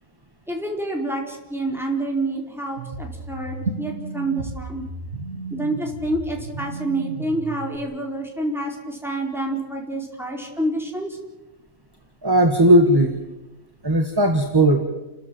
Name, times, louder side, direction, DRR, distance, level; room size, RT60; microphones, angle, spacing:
voice 1, 0.5-4.8 5.5-11.2, right 1 dB, ahead, 0 dB, 4.4 m, -28 dB
sound 1, 2.8-7.8, right 3 dB, 60° right, 2.4 m, -33 dB
voice 2, 12.2-13.2 13.8-14.8, right 1 dB, 15° right, 6 dB, 1.4 m, -16 dB
30.0 x 14.0 x 7.7 m, 1.0 s
omnidirectional pair, 1.5 m